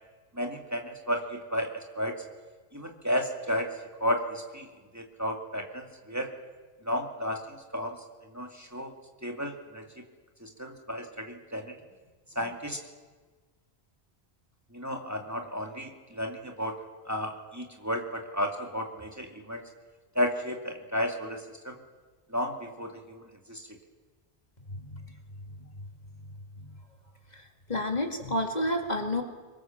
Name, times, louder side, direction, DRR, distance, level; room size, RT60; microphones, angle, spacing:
voice 1, 0.3-2.2 2.7-3.7 4.0-4.7 4.9-6.3 6.8-8.0 8.3-8.9 9.2-9.8 10.4-11.7 12.4-12.8 14.7-16.8 17.1-19.6 20.1-21.8 22.3-23.6, equal, 15° right, 2 dB, 2.4 m, -33 dB
voice 2, 24.7-25.2 25.6-25.7 26.6-26.7 27.3-29.2, left 1 dB, 40° left, 4 dB, 2.2 m, -31 dB
26.0 x 23.0 x 7.2 m, 1.3 s
omnidirectional pair, 1.1 m